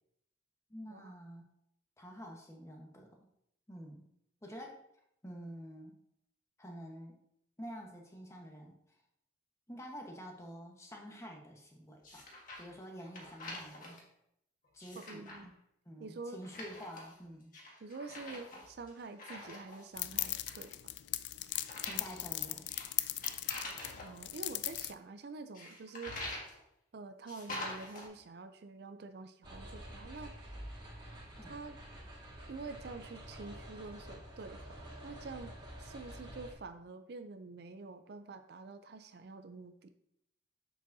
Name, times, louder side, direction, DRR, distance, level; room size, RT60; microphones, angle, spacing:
voice 1, 0.7-1.4 2.0-3.2 3.7-4.1 4.4-4.8 5.2-6.0 6.6-7.2 7.6-9.0 9.7-12.2 12.6-14.0 14.7-15.5 15.8-17.5 21.9-22.7 31.4-31.5, equal, 15° left, 1 dB, 1.1 m, -48 dB
sound 1, 12.0-12.7 13.0-14.0 14.6-15.4 16.4-17.2 17.5-19.9 20.2-20.7 21.5-24.1 25.5-26.6 27.3-28.1, left 2 dB, 45° left, 1.6 m, -45 dB
voice 2, 14.9-15.5 16.0-16.4 17.8-20.8 24.0-26.5 26.9-30.6 31.5-31.8 32.5-39.9, right 3 dB, 55° right, 9 dB, 0.4 m, -47 dB
sound 2, 20.0-24.9, left 15 dB, 65° left, 0.3 m, -38 dB
sound 3, 29.4-36.5, right 1 dB, 25° right, 1.8 m, -49 dB
7.5 x 6.9 x 2.7 m, 0.76 s
head